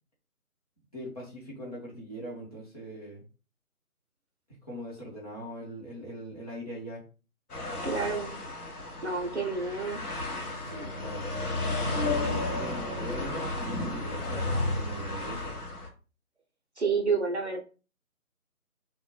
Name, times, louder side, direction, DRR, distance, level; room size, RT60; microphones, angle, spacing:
voice 1, 0.9-3.2 4.6-7.0 10.6-15.6, equal, 25° left, -5 dB, 0.8 m, -41 dB
sound 1, 7.5-15.9, left 2 dB, 85° left, 0.9 m, -33 dB
voice 2, 7.8-8.3 9.0-10.0 16.8-17.6, right 4 dB, 50° right, 1 dB, 0.4 m, -29 dB
2.1 x 2.1 x 3.0 m, 0.34 s
figure-of-eight pair, 160°, 44 cm